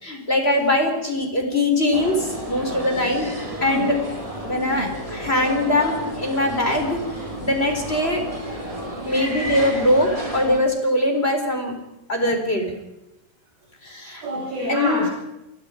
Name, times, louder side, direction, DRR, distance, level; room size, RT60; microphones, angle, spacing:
voice 1, 0.0-3.3 3.6-4.0 4.4-7.0 7.4-8.2 9.1-11.7 12.1-12.7 13.8-14.2 14.7-15.0, left 1 dB, 15° left, 4 dB, 4.0 m, -22 dB
sound 1, 1.9-10.6, right 1 dB, 10° right, 4.0 m, -32 dB
voice 2, 3.6-3.9 4.5-4.9 7.5-7.6 14.2-15.1, right 1 dB, 65° right, -5 dB, 7.9 m, -28 dB
27.5 x 22.0 x 5.2 m, 0.91 s
omnidirectional pair, 4.6 m